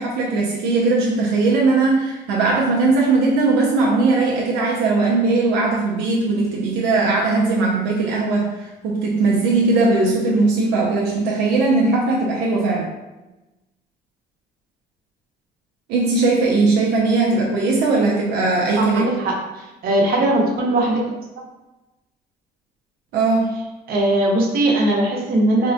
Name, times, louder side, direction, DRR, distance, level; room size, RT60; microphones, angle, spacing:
voice 1, 0.0-12.9 15.9-19.1 23.1-23.5, right 3 dB, 85° right, -3 dB, 0.5 m, -19 dB
voice 2, 18.8-19.3 19.8-21.0 23.9-25.7, right 1 dB, 60° right, -1 dB, 0.8 m, -19 dB
3.4 x 2.1 x 2.7 m, 1.0 s
cardioid pair, 110°, 17 cm